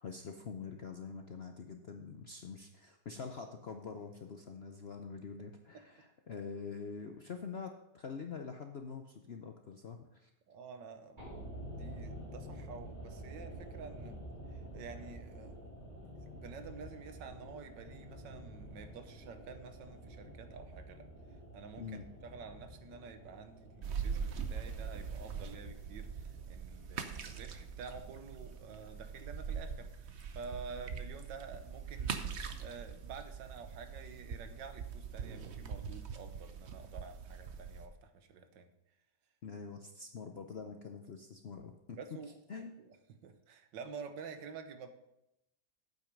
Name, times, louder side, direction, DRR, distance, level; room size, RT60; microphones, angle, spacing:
voice 1, 0.0-10.3 11.6-11.7 21.8-22.1 24.8-24.9 39.4-42.0 42.5-42.7, left 5 dB, 60° left, 5 dB, 0.6 m, -45 dB
voice 2, 10.5-14.2 14.5-15.6 16.2-21.1 21.5-38.7 41.9-42.4 42.8-44.9, right 5 dB, 85° right, 8 dB, 1.6 m, -49 dB
sound 1, 11.2-29.4 29.6-29.7, right 1 dB, 25° right, 4.7 m, -50 dB
sound 2, 23.8-37.9, right 6 dB, 50° right, 0.8 m, -42 dB
8.9 x 8.2 x 5.2 m, 0.85 s
omnidirectional pair, 1.9 m